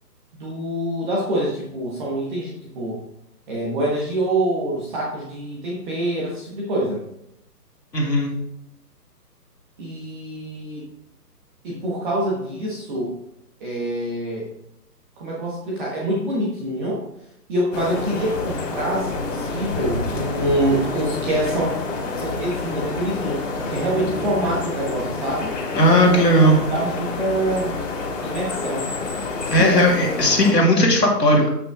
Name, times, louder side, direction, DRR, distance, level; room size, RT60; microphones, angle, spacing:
voice 1, 0.4-3.0 3.5-7.0 9.8-10.8 11.6-13.1 13.6-14.5 15.2-17.0 17.5-25.6 26.0-26.2 26.7-27.8 28.2-28.9 29.6-30.0, right 1 dB, ahead, -5 dB, 0.5 m, -25 dB
voice 2, 7.9-8.4 25.7-26.6 29.5-31.5, equal, 80° left, 0 dB, 2.5 m, -16 dB
sound 1, 17.7-30.5, left 3 dB, 50° left, 1.7 m, -28 dB
6.8 x 5.8 x 3.6 m, 0.80 s
hypercardioid pair, 145°, 48 cm